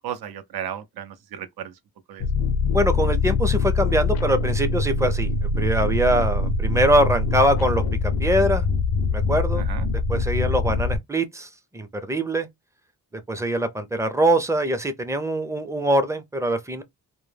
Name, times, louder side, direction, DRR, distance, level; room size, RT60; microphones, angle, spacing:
voice 1, 0.0-1.7 2.1-2.3 9.7-9.9, right 9 dB, 75° right, 0.5 m, -34 dB
sound 1, 2.2-11.0, left 3 dB, 80° left, 0.5 m, -23 dB
voice 2, 2.7-7.8 8.2-8.7 9.1-9.6 10.1-12.5 13.3-16.8, right 1 dB, 10° right, 0.4 m, -23 dB
2.1 x 2.0 x 3.2 m
cardioid pair, 95°, 37 cm